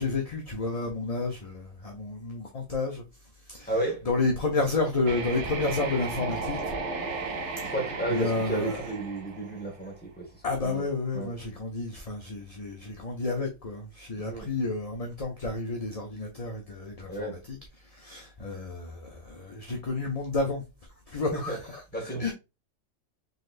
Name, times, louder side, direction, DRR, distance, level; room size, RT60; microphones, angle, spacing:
voice 1, 0.0-3.0 3.5-3.7 4.1-6.7 8.1-8.9 10.4-17.6 17.9-20.6 21.1-22.3, left 3 dB, 40° left, 0.6 m, -31 dB
voice 2, 3.7-4.1 7.6-10.3 10.6-10.9 11.1-11.3 14.2-14.5 17.1-17.4 21.3-21.6 21.9-22.3, right 1 dB, 10° left, 1.3 m, -32 dB
sound 1, 5.0-10.0, right 3 dB, 65° right, 1.1 m, -35 dB
4.0 x 3.2 x 2.4 m
omnidirectional pair, 1.3 m